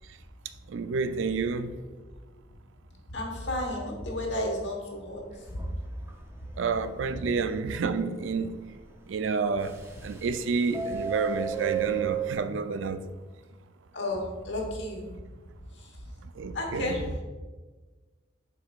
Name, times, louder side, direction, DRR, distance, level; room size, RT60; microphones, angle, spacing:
voice 1, 0.7-1.8 6.6-8.6 9.1-9.8 10.0-13.0 16.4-17.0, right 4 dB, 85° right, 0.4 m, -29 dB
voice 2, 3.1-5.2 5.5-5.7 13.9-15.1 15.8-15.9 16.5-17.1, left 1 dB, 70° left, 1.3 m, -32 dB
Subway metro underground, 5.3-5.7 6.1-6.2 6.5-6.6 7.1-7.2 9.6-10.3 10.6-12.3, right 9 dB, 15° right, 0.6 m, -31 dB
8.4 x 4.7 x 2.4 m
head